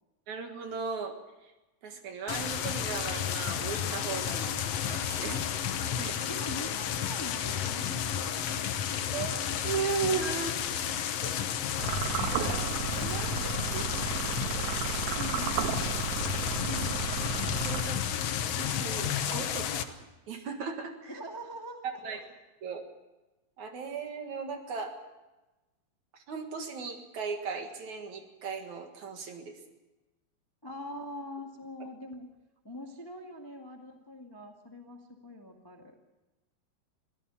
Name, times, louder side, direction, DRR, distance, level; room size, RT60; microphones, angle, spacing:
voice 1, 0.3-1.5 1.8-5.4 5.7-6.2 9.1-9.3 9.6-10.6 12.3-13.8 14.9-15.0 16.6-16.9 17.6-18.0 18.5-20.0 20.3-21.2 21.8-22.2 22.6-22.9 23.6-25.0 26.1-29.6 31.8-31.9, right 5 dB, 55° right, 5 dB, 2.9 m, -37 dB
sound 1, 2.3-19.8, left 9 dB, 80° left, 1.4 m, -32 dB
voice 2, 6.3-8.8 15.1-16.2 16.7-17.0 21.1-22.2 30.6-32.3 32.6-36.0, left 1 dB, 15° left, 2 dB, 0.9 m, -43 dB
sound 2, 11.8-18.3, right 10 dB, 80° right, 2.7 m, -34 dB
24.0 x 16.0 x 7.1 m, 1.1 s
omnidirectional pair, 4.4 m